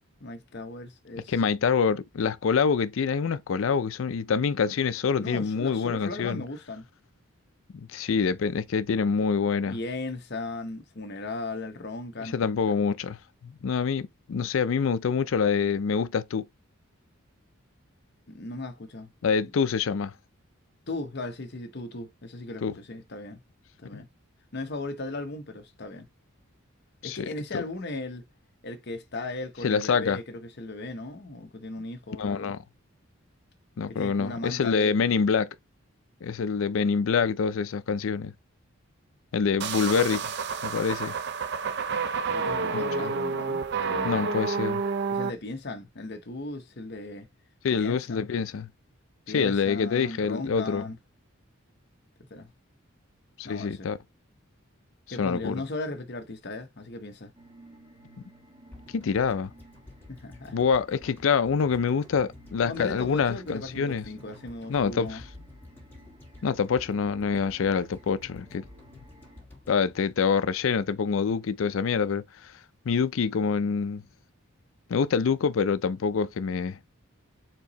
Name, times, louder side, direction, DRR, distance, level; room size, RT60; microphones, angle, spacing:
voice 1, 0.2-1.4 5.2-6.9 9.7-12.4 18.3-19.1 19.4-19.5 20.9-23.4 23.8-24.1 24.5-26.1 27.0-28.2 28.6-32.5 33.9-34.9 42.3-44.1 45.1-47.3 47.7-48.3 49.3-51.0 52.2-52.5 53.4-53.9 55.1-57.3 60.1-60.6 62.7-65.2, left 2 dB, 50° left, 0.8 m, -37 dB
voice 2, 1.3-6.4 7.7-9.8 12.2-16.5 19.2-20.1 22.6-22.7 23.9-24.0 27.0-27.3 27.5-27.6 29.6-30.2 32.2-32.6 33.8-35.5 36.2-38.3 39.3-40.3 40.6-41.1 42.7-43.1 44.0-44.8 47.6-48.7 49.3-50.8 53.4-54.0 55.2-55.6 58.9-59.5 60.5-64.0 64.7-65.2 66.4-68.6 69.7-72.5 72.9-74.0 74.9-76.8, left 6 dB, 65° left, 0.4 m, -26 dB
sound 1, 39.6-45.3, right 4 dB, 50° right, 0.4 m, -29 dB
sound 2, 57.3-69.4, equal, 20° right, 1.5 m, -55 dB
sound 3, 58.7-70.9 71.2-71.3, left 2 dB, 10° left, 1.9 m, -51 dB
4.5 x 2.7 x 4.0 m
head